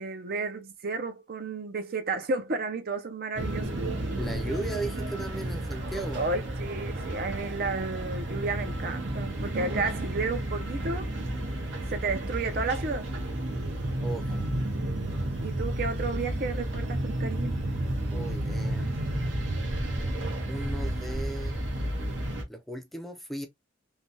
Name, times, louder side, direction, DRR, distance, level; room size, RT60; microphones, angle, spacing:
voice 1, 0.0-4.0 6.1-11.1 11.9-13.1 15.4-17.7, right 3 dB, 50° right, 0.5 m, -32 dB
sound 1, 3.3-22.4, right 1 dB, 75° right, 1.0 m, -32 dB
voice 2, 4.2-6.2 14.0-14.4 18.1-19.7 20.5-21.6 22.5-23.5, right 1 dB, ahead, 0.4 m, -37 dB
3.2 x 2.2 x 2.6 m
head